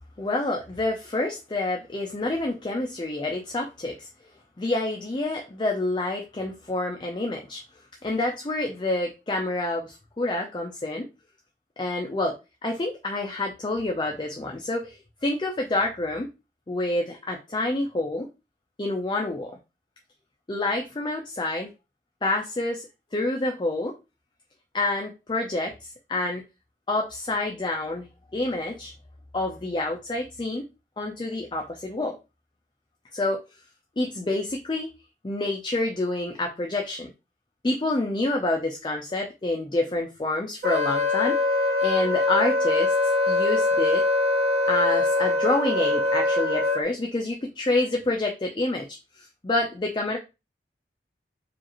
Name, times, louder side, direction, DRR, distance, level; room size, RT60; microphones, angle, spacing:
voice 1, 0.2-4.1 4.6-7.6 8.0-11.1 11.8-12.4 12.6-16.3 16.7-18.3 18.8-19.6 20.5-21.7 22.2-22.8 23.1-23.9 24.7-26.4 26.9-28.1 28.3-28.9 29.3-30.6 31.0-32.2 33.1-33.4 34.0-34.9 35.2-37.1 37.6-41.4 41.8-42.9 43.3-44.0 44.7-50.2, left 2 dB, 25° left, 2 dB, 0.4 m, -28 dB
Wind instrument woodwind instrument, 40.6-46.8, left 2 dB, 70° right, 2.0 m, -23 dB
4.9 x 2.5 x 2.9 m, 0.27 s
head